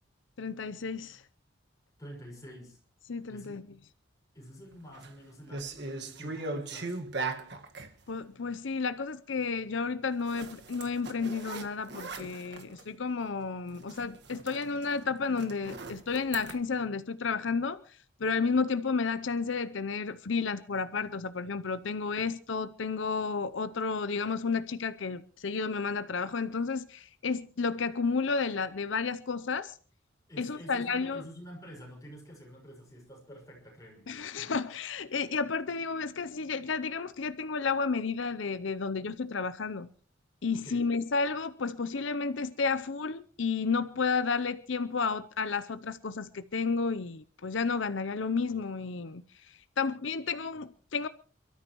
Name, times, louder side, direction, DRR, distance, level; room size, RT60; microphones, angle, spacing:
voice 1, 0.4-1.2 3.1-3.7 8.1-29.8 30.4-31.2 34.1-39.9 40.4-51.1, left 4 dB, 75° left, 0.7 m, -32 dB
voice 2, 2.0-2.8 3.3-3.6 4.3-7.0 30.3-34.1 34.4-34.5 40.5-40.9, equal, 15° left, 6.3 m, -48 dB
sound 1, 4.7-5.1 5.5-7.9 10.3-12.9 13.3-13.4 13.7-16.5, right 3 dB, 60° right, 1.7 m, -39 dB
28.0 x 13.5 x 3.1 m
head